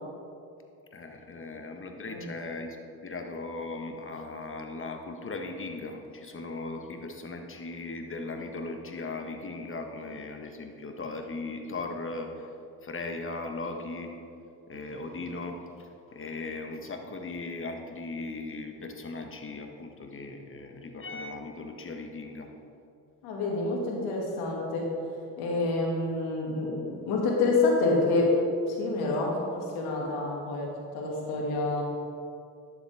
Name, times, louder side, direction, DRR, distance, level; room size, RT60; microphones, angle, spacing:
voice 1, 0.9-2.8 3.0-12.5 12.8-14.1 14.7-22.5, left 3 dB, 35° left, 4 dB, 1.3 m, -38 dB
voice 2, 23.2-24.9 25.4-28.3 28.7-30.7 30.9-31.8, left 3 dB, 80° left, -1 dB, 2.1 m, -28 dB
11.5 x 7.3 x 3.5 m, 2.5 s
supercardioid pair, 65°, 38 cm